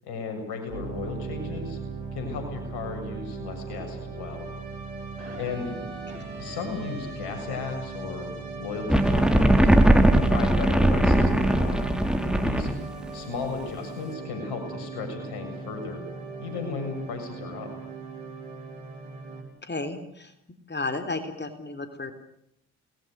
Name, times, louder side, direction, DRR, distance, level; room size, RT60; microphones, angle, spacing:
voice 1, 0.0-1.8 2.1-4.5 5.4-5.7 6.4-8.3 8.6-9.7 10.1-11.9 12.4-12.7 13.1-16.0 16.4-17.7, left 5 dB, 70° left, 5 dB, 7.4 m, -35 dB
sound 1, 0.7-19.4, right 4 dB, 80° right, 6.9 m, -38 dB
sound 2, 8.9-12.8, right 1 dB, ahead, 3.6 m, -20 dB
voice 2, 19.6-20.3 20.7-22.1, left 3 dB, 25° left, 9 dB, 3.8 m, -32 dB
29.0 x 20.5 x 6.6 m, 0.74 s
hypercardioid pair, 45°, 40 cm